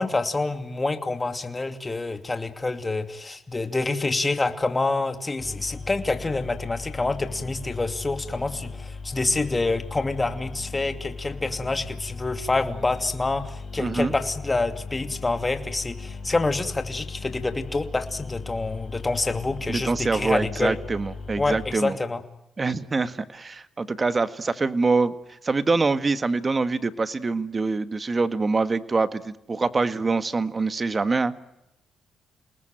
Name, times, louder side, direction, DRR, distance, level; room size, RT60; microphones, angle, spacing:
voice 1, 0.0-20.8 21.4-22.2, left 3 dB, 20° left, 8 dB, 2.7 m, -27 dB
sound 1, 5.4-21.7, left 4 dB, 40° left, 6.4 m, -38 dB
voice 2, 13.8-14.1 19.7-22.0 22.6-31.5, right 3 dB, 30° right, 12 dB, 1.7 m, -25 dB
29.0 x 19.5 x 9.2 m, 0.89 s
cardioid pair, 90°, 0 cm